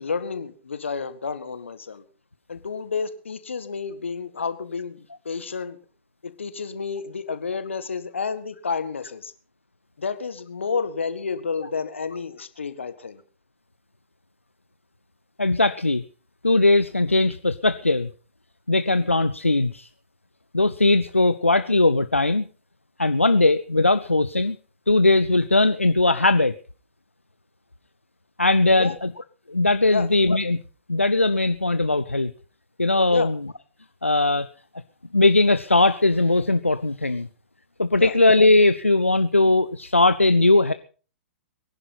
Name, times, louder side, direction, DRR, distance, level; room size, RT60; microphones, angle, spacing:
voice 1, 0.0-2.0 2.5-5.8 6.2-9.3 10.0-13.2 28.8-29.0 29.9-30.1 33.1-33.3 37.9-38.1, left 5 dB, 70° left, 11 dB, 1.7 m, -30 dB
voice 2, 15.4-16.0 16.4-18.1 18.7-19.9 20.5-22.5 23.0-24.6 24.9-26.5 28.4-29.1 29.5-30.6 30.9-32.3 32.8-33.5 34.0-34.5 35.1-37.3 37.8-40.7, left 2 dB, 85° left, 12 dB, 0.7 m, -19 dB
23.5 x 11.0 x 4.2 m, 0.40 s
figure-of-eight pair, 110°, 7 cm